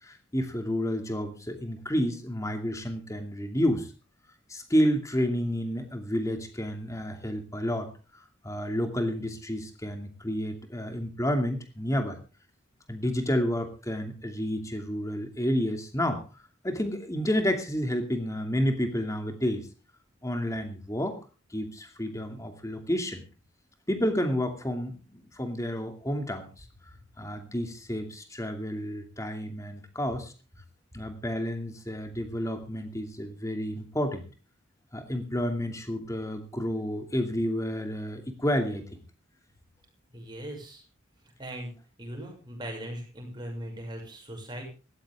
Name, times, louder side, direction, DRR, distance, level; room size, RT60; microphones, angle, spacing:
voice 1, 0.0-3.9 4.5-7.9 8.4-12.2 12.9-16.2 16.6-19.7 20.2-21.2 21.5-23.2 23.9-26.6 27.2-30.3 30.9-34.3 34.9-39.0, equal, 15° left, 6 dB, 2.6 m, -30 dB
voice 2, 40.1-40.8 41.4-41.7 42.0-44.6, right 1 dB, 20° right, 1 dB, 6.5 m, -39 dB
17.5 x 14.5 x 3.7 m, 0.34 s
head